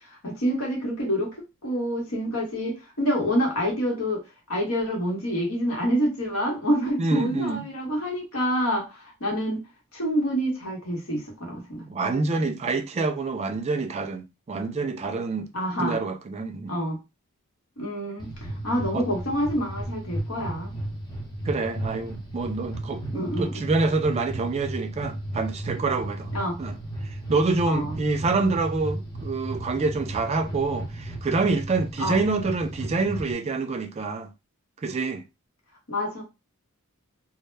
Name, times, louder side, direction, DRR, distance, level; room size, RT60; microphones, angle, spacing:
voice 1, 0.1-1.4 1.6-4.2 4.5-9.6 9.9-11.9 15.5-16.0 16.7-17.0 17.8-18.3 18.6-20.7 23.1-23.6 26.3-26.6 27.7-27.9 32.0-32.2 35.9-36.2, equal, 75° left, 1.0 m, -27 dB
voice 2, 7.0-7.6 11.9-15.5 15.8-16.7 18.9-19.1 21.4-26.3 26.6-26.7 27.0-34.3 34.8-35.2, right 3 dB, 30° right, 0.3 m, -27 dB
sound 1, 18.2-33.3, right 1 dB, 20° left, 0.7 m, -34 dB
2.1 x 2.1 x 3.2 m
head